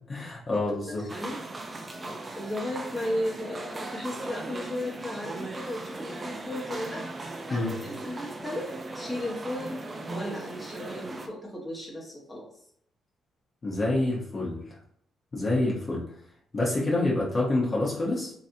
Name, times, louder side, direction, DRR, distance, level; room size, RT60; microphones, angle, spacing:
voice 1, 0.1-1.1 7.5-7.8 13.6-14.6 15.3-16.0 16.5-18.3, left 2 dB, 35° left, -5 dB, 1.0 m, -27 dB
voice 2, 0.7-1.4 2.0-7.0 7.5-9.8 10.1-12.4, left 1 dB, 10° left, -5 dB, 1.1 m, -35 dB
sound 1, 1.1-11.3, right 2 dB, 30° right, 0.4 m, -38 dB
3.1 x 2.7 x 2.7 m, 0.67 s
cardioid pair, 90°, 0 cm